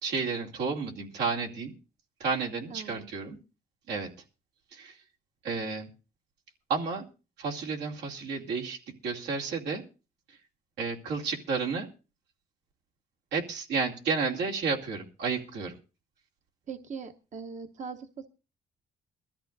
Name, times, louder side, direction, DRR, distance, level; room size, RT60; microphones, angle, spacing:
voice 1, 0.0-1.7 2.2-3.4 3.9-4.1 4.7-5.0 5.4-5.9 6.7-7.0 7.4-9.8 10.3-10.4 10.8-11.9 13.3-15.7, right 4 dB, 90° right, -1 dB, 2.7 m, -31 dB
voice 2, 2.7-3.1 16.7-18.3, right 5 dB, 45° right, 8 dB, 0.9 m, -41 dB
23.0 x 13.5 x 2.6 m, 0.32 s
cardioid pair, 105°, 17 cm